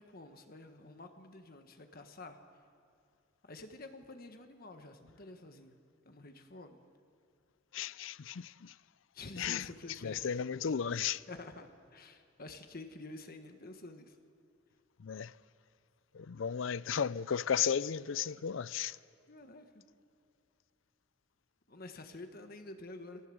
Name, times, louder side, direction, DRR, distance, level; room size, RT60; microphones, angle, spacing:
voice 1, 0.0-2.4 3.4-5.8 6.0-6.8 9.1-10.2 11.3-14.2 19.3-19.8 21.7-23.2, left 2 dB, 45° left, 1.3 m, -49 dB
voice 2, 7.7-8.8 9.4-11.2 15.0-15.3 16.1-19.0, left 7 dB, 65° left, 0.5 m, -35 dB
25.5 x 17.5 x 7.8 m
head